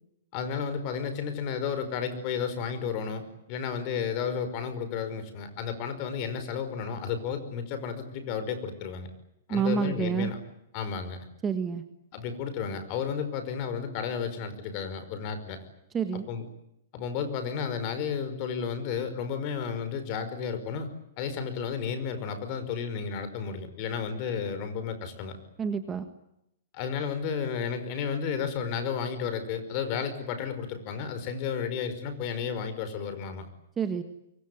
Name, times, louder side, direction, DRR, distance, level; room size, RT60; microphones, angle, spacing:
voice 1, 0.3-3.2 3.5-9.1 9.5-10.4 10.7-11.3 12.1-15.6 16.3-16.5 16.9-20.9 21.2-25.4 26.7-33.5, left 6 dB, 35° left, 10 dB, 5.2 m, -32 dB
voice 2, 9.5-10.3 11.4-11.8 15.9-16.3 25.6-26.0 33.8-34.0, right 6 dB, 15° right, 8 dB, 1.6 m, -28 dB
26.0 x 23.5 x 9.5 m, 0.80 s
hypercardioid pair, 165°, 0 cm